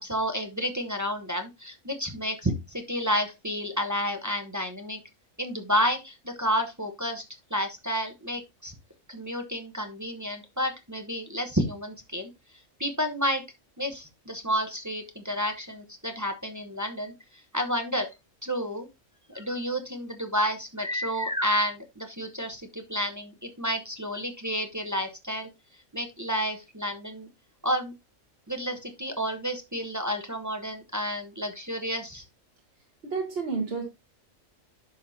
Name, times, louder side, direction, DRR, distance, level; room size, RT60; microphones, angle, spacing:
voice 1, 0.0-5.0 5.4-7.2 7.5-8.7 9.1-12.3 12.8-13.4 13.8-18.1 18.4-18.9 19.3-25.5 25.9-27.3 27.6-27.9 28.5-32.2, equal, 15° right, 0.8 m, -30 dB
voice 2, 33.0-33.8, right 4 dB, 50° right, 1.5 m, -30 dB
10.5 x 5.6 x 2.7 m
omnidirectional pair, 1.3 m